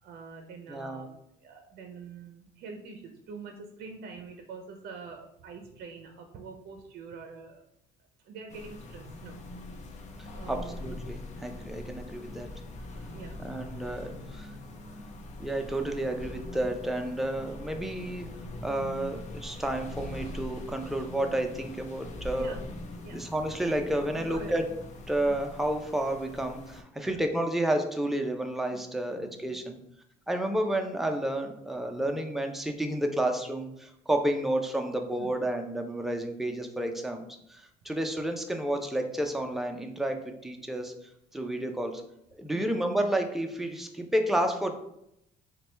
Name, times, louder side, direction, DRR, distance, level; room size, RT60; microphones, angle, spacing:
voice 1, 0.0-1.1 1.4-7.6 8.2-9.4 10.1-10.7 13.1-13.4 22.3-22.6 23.0-23.2 24.2-24.6 27.0-27.2 28.7-28.8 29.2-29.5 35.2-35.3 42.5-42.7, right 4 dB, 65° right, 4 dB, 0.5 m, -45 dB
voice 2, 0.7-1.1 10.2-12.5 13.4-14.5 15.4-18.3 18.6-22.6 23.1-24.6 25.1-29.8 30.3-40.9 41.3-42.0 42.3-44.8, right 1 dB, ahead, 4 dB, 0.4 m, -31 dB
sound 1, 8.5-26.8, left 2 dB, 45° left, 0.6 m, -42 dB
4.1 x 2.2 x 3.2 m, 0.78 s
cardioid pair, 110°, 17 cm